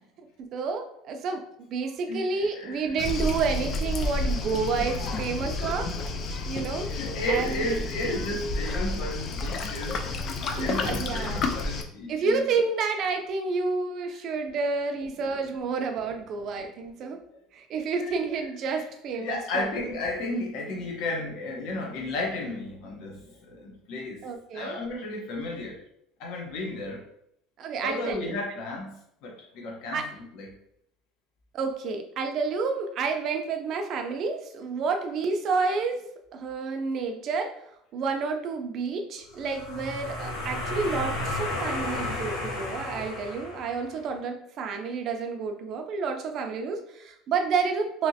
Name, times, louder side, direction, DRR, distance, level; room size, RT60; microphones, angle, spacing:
voice 1, 0.4-1.4 1.7-5.9 6.5-6.9 7.3-7.6 10.5-11.4 12.1-17.2 17.5-19.7 24.2-24.8 27.6-28.4 29.9-30.0 31.5-37.6 37.9-48.1, right 4 dB, 40° right, 5 dB, 0.5 m, -30 dB
voice 2, 2.6-3.0 6.6-10.0 10.6-12.4 17.0-17.2 17.9-18.2 18.8-18.9 19.2-24.2 24.5-25.8 26.2-27.0 27.8-30.5, left 1 dB, 60° left, 0 dB, 1.0 m, -33 dB
Waves surf, 3.0-11.8, left 3 dB, 30° left, 0.4 m, -30 dB
sound 1, 39.3-44.1, left 2 dB, 75° left, 1.2 m, -33 dB
3.2 x 2.8 x 2.7 m, 0.75 s
cardioid pair, 165°, 0 cm